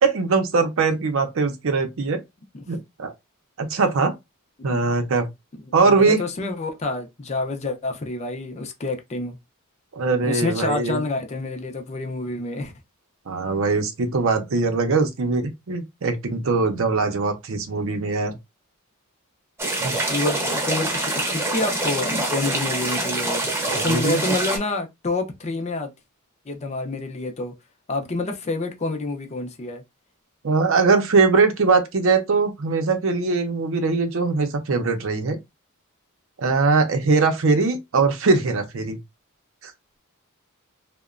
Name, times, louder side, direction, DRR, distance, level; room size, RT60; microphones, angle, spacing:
voice 1, 0.0-2.2 2.7-3.1 3.6-4.1 4.6-5.3 5.7-6.2 9.9-11.0 13.3-18.4 19.8-19.9 23.6-24.2 30.4-35.4 36.4-39.0 39.6-39.7, right 4 dB, 65° right, 0.6 m, -21 dB
voice 2, 5.5-9.4 10.2-12.7 20.1-25.9 26.5-27.5 27.9-29.8, left 2 dB, 30° left, 0.5 m, -28 dB
sound 1, 19.6-24.6, right 2 dB, 10° right, 0.7 m, -25 dB
2.8 x 2.1 x 2.4 m
head